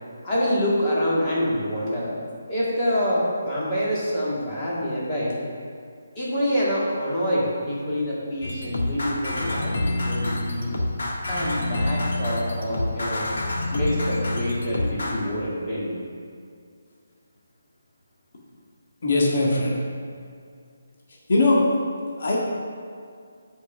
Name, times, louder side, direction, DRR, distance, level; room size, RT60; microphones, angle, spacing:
voice 1, 0.2-2.2 2.5-5.4 6.2-10.7 11.3-13.3 13.7-16.0, equal, 20° left, -7 dB, 1.9 m, -26 dB
sound 1, 8.4-15.2, left 1 dB, 65° left, 1.4 m, -27 dB
voice 2, 19.0-19.8 21.3-21.6 22.2-22.4, left 2 dB, 50° left, -4 dB, 1.7 m, -20 dB
8.0 x 5.4 x 6.1 m, 2.3 s
hypercardioid pair, 175°, 0 cm